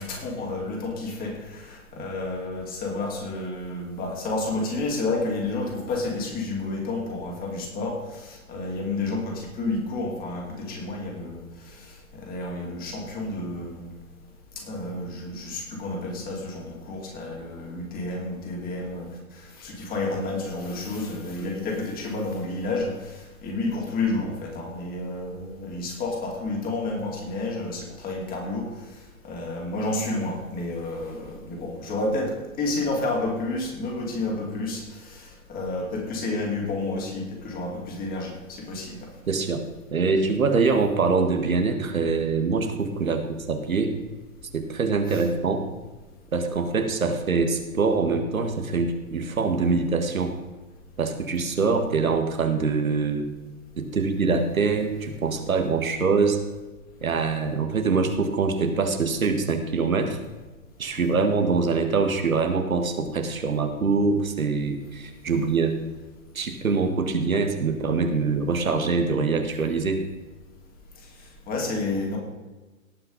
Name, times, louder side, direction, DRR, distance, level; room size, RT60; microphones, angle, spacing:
voice 1, 0.0-13.9 14.5-28.7 29.2-39.1 61.0-61.2 71.5-72.2, left 2 dB, 20° left, 1 dB, 2.9 m, -30 dB
voice 2, 39.3-39.6 39.9-43.9 44.5-45.6 46.3-50.3 51.0-53.3 53.8-56.4 57.0-60.2 60.8-65.7 66.3-70.0, right 4 dB, 70° right, 6 dB, 1.9 m, -24 dB
18.0 x 6.0 x 5.3 m, 1.2 s
figure-of-eight pair, 120°, 42 cm